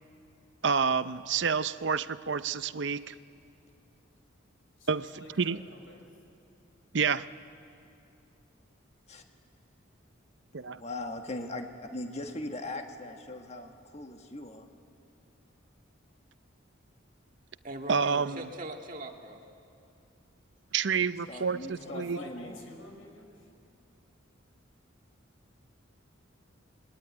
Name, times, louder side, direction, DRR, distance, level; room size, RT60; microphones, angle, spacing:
voice 1, 0.6-3.1 4.9-5.1 5.4-5.6 6.9-7.3 10.5-10.8 17.9-18.5 20.7-22.2, right 5 dB, 60° right, 14 dB, 0.6 m, -28 dB
voice 2, 4.8-6.0 21.6-23.5, left 1 dB, 85° left, 2 dB, 5.2 m, -48 dB
voice 3, 10.6-14.7 21.3-22.6, left 2 dB, 35° left, 4 dB, 1.5 m, -40 dB
voice 4, 17.6-19.4 21.3-21.4, right 1 dB, 40° right, 2 dB, 2.0 m, -41 dB
26.5 x 21.5 x 9.6 m, 2.6 s
head